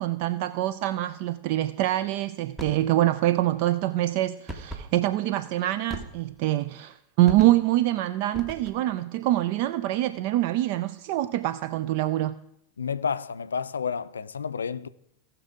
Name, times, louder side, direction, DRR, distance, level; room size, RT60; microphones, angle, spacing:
voice 1, 0.0-12.4, right 14 dB, 45° right, 0.3 m, -25 dB
sound 1, 2.6-2.9 4.5-4.9 5.9-6.4 7.3-7.7 8.3-8.9, right 2 dB, 10° right, 1.3 m, -39 dB
voice 2, 12.8-14.9, left 6 dB, 70° left, 0.4 m, -30 dB
17.5 x 6.0 x 3.6 m
figure-of-eight pair, 90°, 0 cm